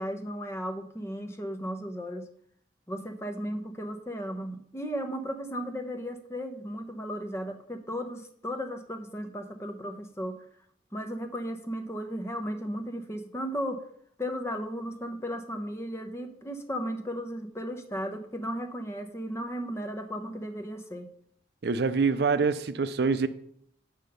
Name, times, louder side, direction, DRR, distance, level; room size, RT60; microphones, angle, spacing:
voice 1, 0.0-2.3 2.9-10.5 10.9-13.8 14.2-21.1, equal, 15° left, 6 dB, 0.9 m, -35 dB
voice 2, 21.6-23.3, right 4 dB, 60° right, 12 dB, 0.5 m, -25 dB
8.1 x 5.7 x 6.7 m, 0.66 s
head